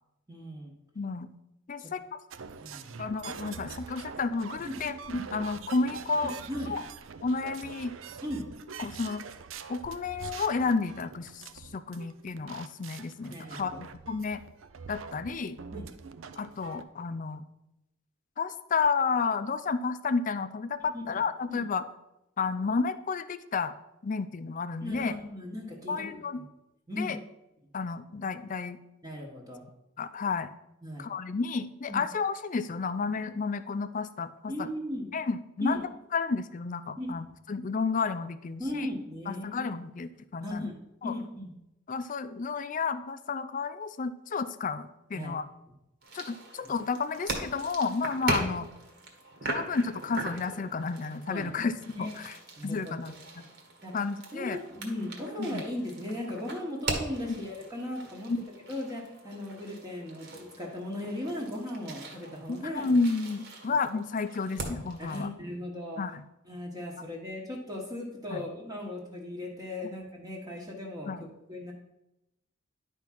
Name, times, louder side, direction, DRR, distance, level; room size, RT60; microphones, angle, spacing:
voice 1, 0.3-0.7 1.8-1.9 2.6-2.9 4.6-4.8 6.5-6.7 8.2-8.4 13.3-13.8 15.7-15.9 20.9-21.2 21.5-21.6 24.8-26.1 26.4-26.5 26.9-27.2 29.0-29.6 30.8-31.0 31.9-32.0 34.5-35.1 35.6-35.8 37.0-37.2 38.6-39.6 40.4-40.7 41.0-41.5 45.1-45.3 46.6-46.7 51.3-51.5 51.9-52.1 52.6-52.9 53.8-53.9 54.3-58.3 58.7-62.9 65.0-66.0 66.4-71.7, left 1 dB, 20° right, -2 dB, 1.2 m, -37 dB
voice 2, 1.0-1.3 1.7-2.2 3.0-6.3 6.7-6.8 7.2-8.0 8.8-9.2 9.7-14.4 14.9-15.6 16.4-17.4 18.4-21.8 22.4-23.7 24.0-25.1 25.9-26.4 27.0-27.2 27.7-28.8 30.0-30.5 31.0-34.7 35.1-38.9 39.3-40.7 41.0-41.1 41.9-45.5 46.1-48.7 49.5-52.4 52.6-53.2 53.9-54.6 55.4-55.6 57.3-57.4 58.3-58.4 62.5-65.3 66.0-66.2 68.3-68.4 71.1-71.2, left 4 dB, 40° left, 13 dB, 0.4 m, -31 dB
sound 1, 2.3-16.8, right 6 dB, 85° right, 0.5 m, -44 dB
sound 2, 46.0-65.2, right 2 dB, 55° right, 1.6 m, -40 dB
10.5 x 3.6 x 5.8 m, 0.91 s
head